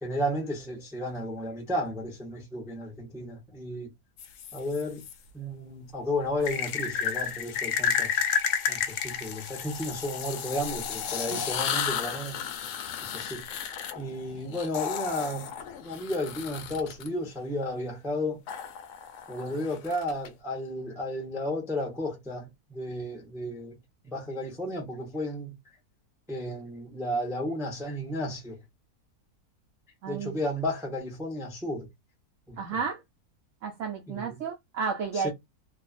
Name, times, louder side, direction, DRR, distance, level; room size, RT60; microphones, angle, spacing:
voice 1, 0.0-3.9 4.5-5.0 5.3-8.2 8.7-12.4 13.0-13.5 13.9-15.5 15.8-18.4 19.3-23.8 24.0-25.6 26.3-28.6 30.1-31.9 32.5-32.6 34.1-34.4 35.1-35.3, left 1 dB, 5° right, 0.4 m, -33 dB
sound 1, 4.2-5.1 6.4-17.1 18.5-20.3, left 8 dB, 70° left, 0.8 m, -32 dB
voice 2, 30.0-30.4 32.6-33.0 33.6-35.3, right 6 dB, 70° right, 0.8 m, -32 dB
2.6 x 2.4 x 2.4 m
omnidirectional pair, 1.7 m